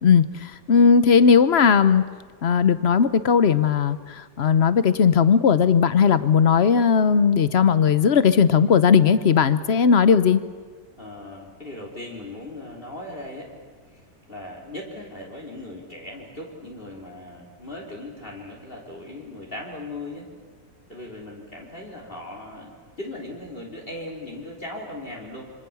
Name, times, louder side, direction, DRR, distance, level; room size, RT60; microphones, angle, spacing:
voice 1, 0.0-2.0 2.4-10.4, left 6 dB, 50° left, 14 dB, 0.9 m, -17 dB
voice 2, 11.0-13.5 13.9-20.3 20.9-25.5, left 1 dB, 30° left, -1 dB, 3.6 m, -38 dB
26.0 x 25.0 x 7.0 m, 1.5 s
omnidirectional pair, 1.8 m